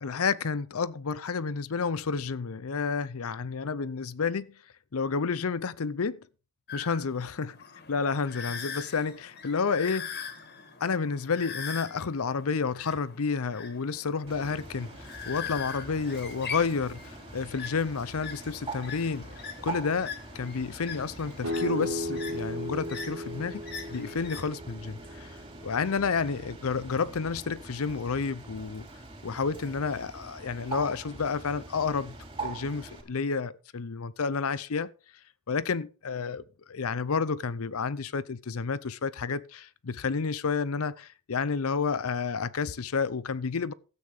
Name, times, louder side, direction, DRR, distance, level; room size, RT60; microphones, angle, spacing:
voice 1, 0.0-4.5 4.9-6.2 6.7-7.6 7.9-10.1 10.8-19.3 19.6-23.6 23.9-28.9 29.2-32.1 32.4-34.9 35.5-43.7, left 5 dB, 70° left, 0.6 m, -30 dB
sound 1, 6.7-24.5, left 6 dB, 50° left, 1.9 m, -42 dB
Bird, 14.3-33.0, right 3 dB, 25° right, 3.3 m, -44 dB
sound 2, 21.4-27.0, left 1 dB, 85° right, 3.5 m, -36 dB
13.0 x 8.6 x 4.9 m
head